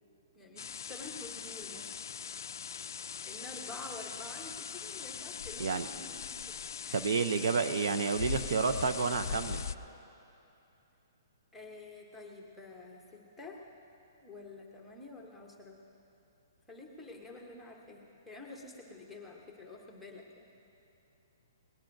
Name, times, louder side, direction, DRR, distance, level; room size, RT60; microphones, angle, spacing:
voice 1, 0.3-1.9 3.3-6.4 6.8-7.0 11.5-13.6 14.2-15.8 16.7-20.5, left 3 dB, ahead, -2 dB, 0.8 m, -48 dB
sound 1, 0.6-9.7, left 7 dB, 65° left, 0.3 m, -41 dB
voice 2, 6.9-9.6, right 5 dB, 55° right, 9 dB, 0.5 m, -30 dB
21.5 x 19.0 x 2.6 m, 2.8 s
hypercardioid pair, 180°, 2 cm